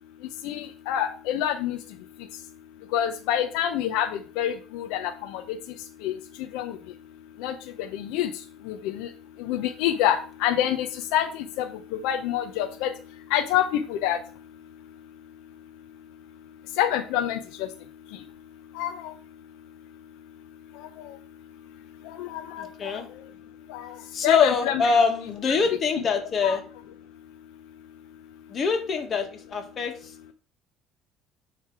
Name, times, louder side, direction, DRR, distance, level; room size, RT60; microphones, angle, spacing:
voice 1, 0.4-1.8 2.9-4.1 4.4-5.6 6.0-6.1 6.5-6.8 7.4-8.3 8.7-9.1 9.4-10.9 11.1-11.7 12.0-12.9 13.3-14.2 16.8-17.4 18.7-19.1 21.0-21.1 22.1-22.7 22.9-23.0 23.7-24.0 24.2-24.9 25.5-25.6 26.4-26.6, left 11 dB, 85° left, 7 dB, 0.7 m, -27 dB
voice 2, 22.6-23.1 24.1-26.6 28.5-30.3, left 5 dB, 40° left, 4 dB, 1.7 m, -24 dB
9.4 x 3.4 x 4.7 m, 0.39 s
cardioid pair, 120°, 0 cm